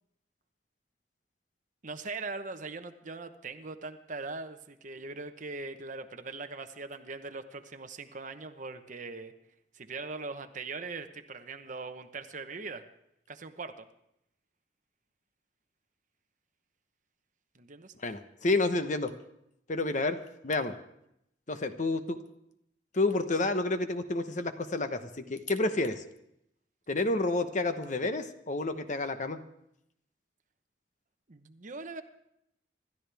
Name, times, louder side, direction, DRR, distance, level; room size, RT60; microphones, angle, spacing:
voice 1, 1.8-9.3 9.7-12.8 13.3-13.9 17.5-17.9 31.3-32.0, right 3 dB, 45° right, 8 dB, 1.0 m, -41 dB
voice 2, 18.0-19.1 19.7-20.2 20.4-20.7 21.5-22.2 22.9-26.0 26.9-29.4, left 2 dB, 45° left, 9 dB, 1.0 m, -29 dB
26.5 x 12.5 x 3.5 m, 0.78 s
head